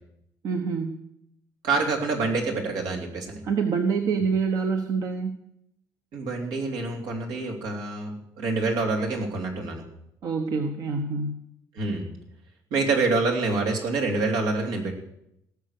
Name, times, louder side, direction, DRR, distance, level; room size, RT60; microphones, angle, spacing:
voice 1, 0.4-1.0 3.4-5.3 10.2-11.4, right 5 dB, 60° right, 5 dB, 1.1 m, -26 dB
voice 2, 1.6-3.4 6.1-9.8 11.8-12.1 12.7-14.9, right 3 dB, 85° right, 2 dB, 3.1 m, -26 dB
18.0 x 6.7 x 6.7 m, 0.78 s
cardioid pair, 110°, 7 cm